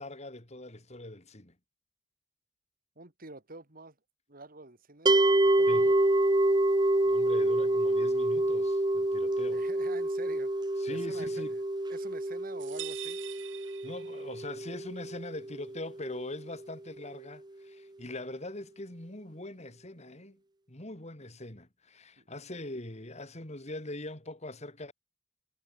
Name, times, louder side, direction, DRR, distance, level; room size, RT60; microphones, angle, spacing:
voice 1, 0.0-1.5 5.7-5.9 7.0-9.6 10.8-11.6 13.6-20.4 20.7-24.9, left 1 dB, 35° left, 3.2 m, -42 dB
voice 2, 3.0-4.0 4.3-5.9 9.5-10.5 10.9-11.6 11.9-13.2 22.2-22.3, right 2 dB, 50° right, 2.8 m, -48 dB
sound 1, 5.1-16.2, right 1 dB, 25° right, 1.1 m, -27 dB
sound 2, 12.6-14.5, right 14 dB, 75° right, 2.1 m, -44 dB
head